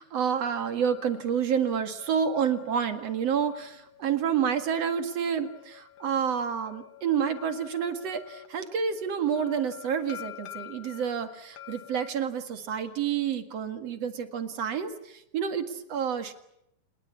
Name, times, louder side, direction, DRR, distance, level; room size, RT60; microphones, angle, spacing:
voice 1, 0.0-16.3, right 7 dB, 55° right, 9 dB, 2.8 m, -29 dB
sound 1, 0.7-12.1, left 13 dB, 55° left, 2.7 m, -49 dB
28.0 x 20.5 x 8.4 m, 0.77 s
omnidirectional pair, 3.8 m